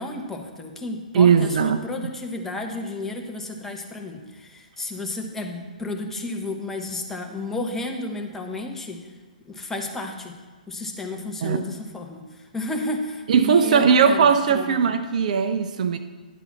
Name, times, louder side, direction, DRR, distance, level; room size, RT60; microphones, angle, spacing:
voice 1, 0.0-9.0 9.5-10.3 10.7-12.2 12.5-14.9, left 2 dB, 5° left, 2 dB, 1.0 m, -32 dB
voice 2, 1.1-2.1 11.4-11.7 13.3-16.0, right 6 dB, 55° right, 9 dB, 0.6 m, -19 dB
11.0 x 4.0 x 7.1 m, 1.4 s
figure-of-eight pair, 125°, 5 cm